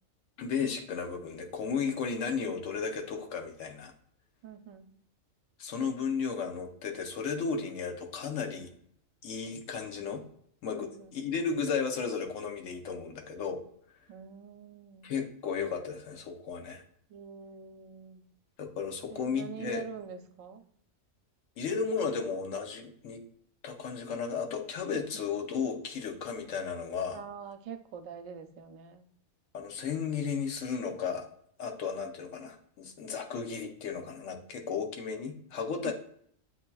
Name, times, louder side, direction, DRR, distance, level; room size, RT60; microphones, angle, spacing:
voice 1, 0.4-3.9 5.6-8.7 9.2-10.3 10.6-13.6 15.0-16.8 18.6-19.8 21.6-23.2 23.6-27.2 29.5-31.2 31.6-35.9, left 5 dB, 75° left, 4 dB, 1.1 m, -34 dB
voice 2, 4.4-4.9 10.8-11.1 14.1-15.1 17.1-18.2 19.1-20.6 24.9-25.3 27.1-29.1 35.8-35.9, right 7 dB, 85° right, 8 dB, 1.0 m, -44 dB
7.7 x 2.8 x 2.2 m, 0.64 s
omnidirectional pair, 1.3 m